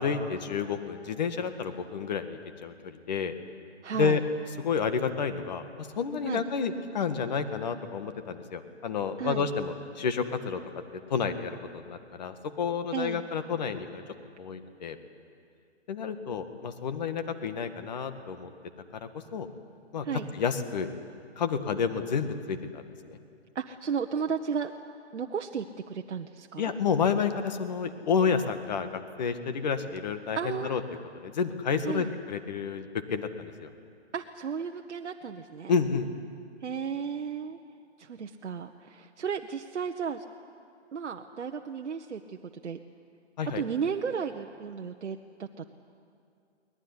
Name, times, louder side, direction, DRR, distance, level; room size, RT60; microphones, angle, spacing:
voice 1, 0.0-3.3 4.0-4.2 4.6-10.6 11.1-14.0 14.4-15.0 15.9-18.5 19.1-19.5 19.9-20.1 20.3-20.9 21.4-23.2 26.6-30.8 31.2-33.7 35.7-36.1 43.4-43.6, left 6 dB, 40° left, 9 dB, 1.8 m, -30 dB
voice 2, 3.8-4.2 6.2-6.4 9.2-9.5 12.9-13.2 20.0-20.3 23.5-24.7 25.1-26.7 30.3-30.8 31.8-32.1 34.1-35.7 36.6-37.6 38.0-40.2 40.9-42.4 42.6-42.8 43.5-45.6, right 6 dB, 80° right, 4 dB, 1.3 m, -34 dB
23.0 x 20.0 x 9.9 m, 2.4 s
hypercardioid pair, 165°, 35 cm